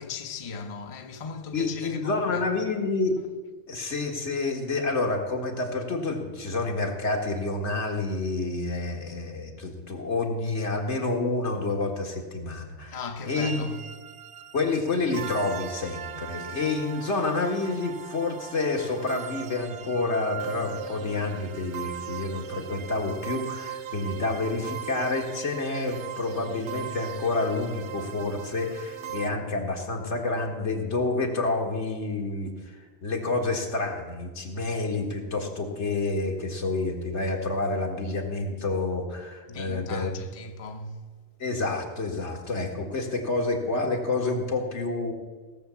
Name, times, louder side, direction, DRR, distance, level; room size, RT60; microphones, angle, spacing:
voice 1, 0.0-2.5 12.9-13.8 39.5-41.1, left 4 dB, 35° left, 0.8 m, -37 dB
voice 2, 1.5-3.1 3.7-13.0 13.3-13.7 14.5-32.8 33.0-40.1 41.4-45.1, left 3 dB, 80° left, 2.0 m, -28 dB
sound 1, 13.4-29.3, right 9 dB, 75° right, 1.0 m, -39 dB
17.0 x 7.2 x 7.1 m
omnidirectional pair, 1.2 m